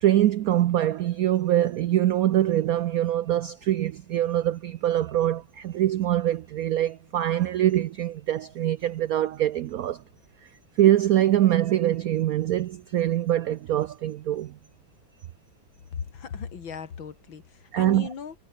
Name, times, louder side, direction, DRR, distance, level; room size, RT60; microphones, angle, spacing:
voice 1, 0.0-10.0 10.8-14.5 17.7-18.1, right 12 dB, 80° right, 0.8 m, -23 dB
voice 2, 15.9-18.3, left 6 dB, 70° left, 2.9 m, -37 dB
omnidirectional pair, 2.2 m